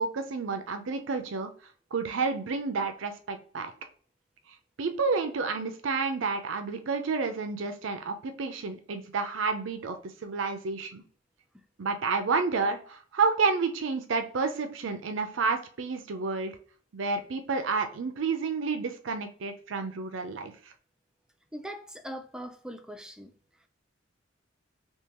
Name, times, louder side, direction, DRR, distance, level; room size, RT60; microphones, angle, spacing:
voice 1, 0.0-1.5 1.9-3.7 4.8-11.0 11.8-16.6 16.9-20.7, right 4 dB, 85° right, 0.5 m, -30 dB
voice 2, 21.5-23.3, equal, 5° right, 0.4 m, -41 dB
3.7 x 2.9 x 2.9 m
head